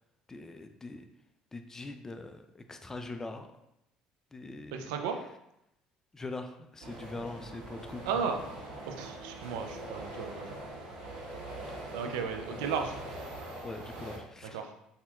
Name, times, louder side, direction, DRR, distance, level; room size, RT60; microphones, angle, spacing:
voice 1, 0.3-1.0 1.5-3.5 4.3-5.0 6.1-8.1 12.5-12.7 13.6-14.6, left 2 dB, 20° left, 7 dB, 0.4 m, -42 dB
voice 2, 4.7-5.2 8.1-8.4 8.9-10.6 11.9-12.9 14.5-14.7, right 6 dB, 85° right, 5 dB, 0.4 m, -34 dB
sound 1, 6.8-14.2, right 1 dB, 60° right, 1.4 m, -43 dB
4.2 x 2.8 x 2.4 m, 0.81 s
supercardioid pair, 75°, 2 cm